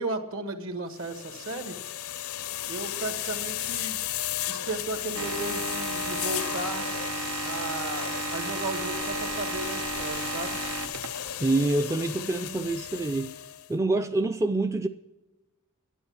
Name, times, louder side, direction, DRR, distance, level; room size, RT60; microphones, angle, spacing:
voice 1, 0.0-1.8 2.7-4.0 4.5-6.9 7.4-10.6, right 2 dB, 65° right, 1.6 m, -35 dB
sound 1, 1.0-13.7, left 11 dB, 70° left, 0.6 m, -34 dB
sound 2, 5.1-11.3, right 5 dB, 90° right, 0.7 m, -34 dB
voice 2, 11.4-13.4 13.7-14.9, right 2 dB, 15° right, 0.4 m, -26 dB
11.0 x 9.3 x 7.2 m
head